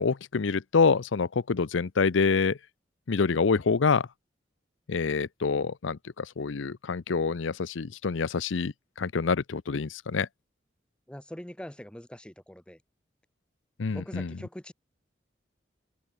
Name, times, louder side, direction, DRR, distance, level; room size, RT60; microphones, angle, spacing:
voice 1, 0.0-2.6 3.1-4.1 4.9-10.3 13.8-14.4, left 5 dB, 85° left, 0.6 m, -26 dB
voice 2, 11.1-12.8 13.9-14.7, equal, 5° left, 0.6 m, -42 dB
head